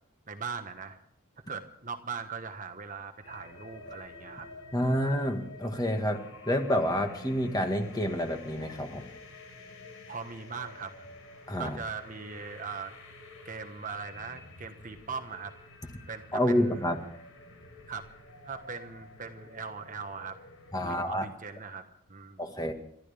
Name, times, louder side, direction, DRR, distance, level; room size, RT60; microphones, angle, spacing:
voice 1, 0.3-1.0 1.5-4.5 4.9-5.1 10.1-10.9 11.6-13.0 13.4-15.5 16.1-16.8 17.9-18.1 18.4-20.4 20.8-22.4, right 5 dB, 35° right, 6 dB, 1.3 m, -40 dB
sound 1, 3.2-20.9, left 3 dB, 75° left, 4.8 m, -49 dB
voice 2, 4.7-9.1 11.5-11.8 16.3-17.0 20.7-21.2 22.4-22.7, equal, 20° left, 4 dB, 1.8 m, -28 dB
29.0 x 13.5 x 3.5 m, 0.68 s
head